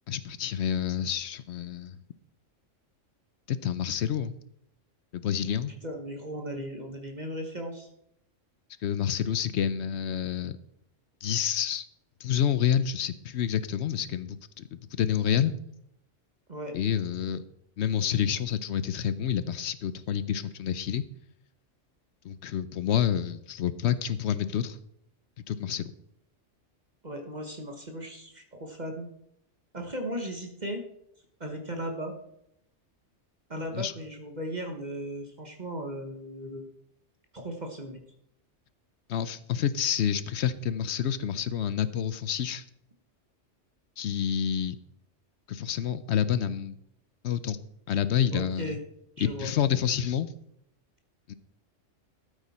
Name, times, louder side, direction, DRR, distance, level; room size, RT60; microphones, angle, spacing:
voice 1, 0.1-2.0 3.5-4.4 5.1-5.7 8.8-10.5 11.2-11.8 12.2-15.5 16.7-17.4 17.8-21.0 22.2-24.8 25.5-25.8 33.7-33.9 39.1-42.6 44.0-44.8 45.5-46.7 47.2-47.6 47.9-48.8 49.2-50.3 51.3-51.4, left 9 dB, 65° left, 15 dB, 0.9 m, -28 dB
voice 2, 5.8-7.9 16.5-16.7 27.0-29.1 29.7-30.8 31.4-32.1 33.5-36.6 37.3-38.0 48.3-48.8 49.2-49.5, equal, 35° right, 3 dB, 1.3 m, -36 dB
13.0 x 8.3 x 4.2 m, 0.75 s
omnidirectional pair, 1.3 m